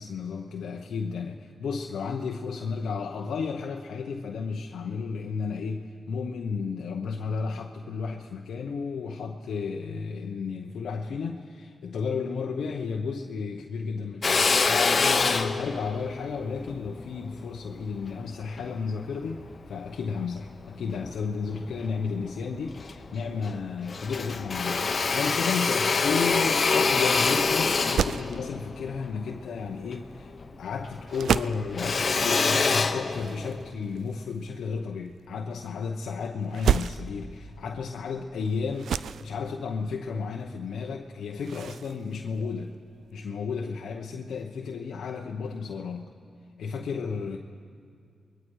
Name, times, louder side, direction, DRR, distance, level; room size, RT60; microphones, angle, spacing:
voice 1, 0.0-30.3 30.6-38.9 39.2-42.7 43.1-46.1 46.6-47.4, left 5 dB, 80° left, 2 dB, 0.9 m, -33 dB
Drill, 14.2-18.8 19.3-20.5 21.0-21.9 22.3-22.4 22.6-23.6 23.9-30.6 30.8-33.7, left 4 dB, 50° left, 1.1 m, -26 dB
sound 1, 27.7-43.2, right 8 dB, 80° right, 0.4 m, -35 dB
28.0 x 21.5 x 4.8 m, 2.2 s
cardioid pair, 55°, 0 cm